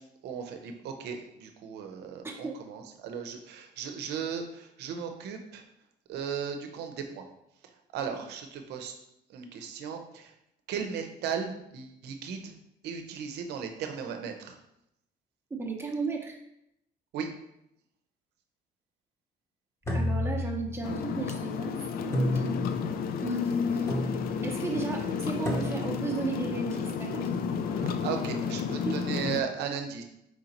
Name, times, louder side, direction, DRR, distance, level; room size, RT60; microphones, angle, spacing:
voice 1, 0.2-5.6 6.1-7.2 7.9-9.0 9.3-10.3 10.7-12.5 12.8-14.6 17.1-17.3 27.8-30.0, right 7 dB, 80° right, 5 dB, 0.7 m, -36 dB
voice 2, 2.2-2.6 8.1-8.2 15.6-16.4 19.9-22.6 23.2-23.9 24.4-27.3 28.7-29.0, right 2 dB, 15° right, 0 dB, 0.7 m, -34 dB
sound 1, 19.8-21.1 22.1-22.9 23.9-24.5 25.5-26.1, left 1 dB, 15° left, 0.9 m, -30 dB
sound 2, 20.8-29.4, left 6 dB, 60° left, 0.4 m, -32 dB
4.6 x 3.8 x 2.9 m, 0.81 s
cardioid pair, 110°, 17 cm